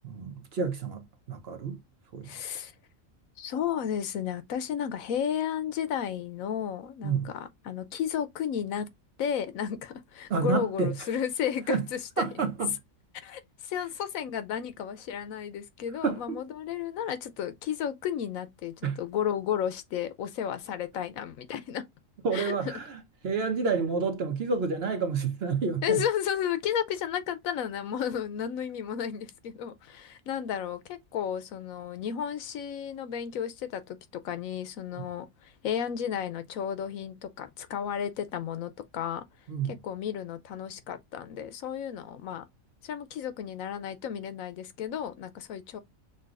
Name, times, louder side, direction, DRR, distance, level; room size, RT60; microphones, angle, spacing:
voice 1, 0.0-1.8 2.1-2.3 7.0-7.3 10.3-10.9 11.7-11.9 12.2-12.8 16.0-16.4 18.8-19.0 22.2-26.0 35.0-35.1 39.5-39.8, right 5 dB, 55° right, 0.9 m, -29 dB
voice 2, 2.2-2.7 3.4-8.9 9.2-12.3 13.2-21.8 22.3-22.6 25.8-34.0 34.2-39.2 39.7-42.4 42.8-45.8, left 9 dB, 80° left, 1.1 m, -33 dB
6.5 x 2.3 x 2.4 m
omnidirectional pair, 1.4 m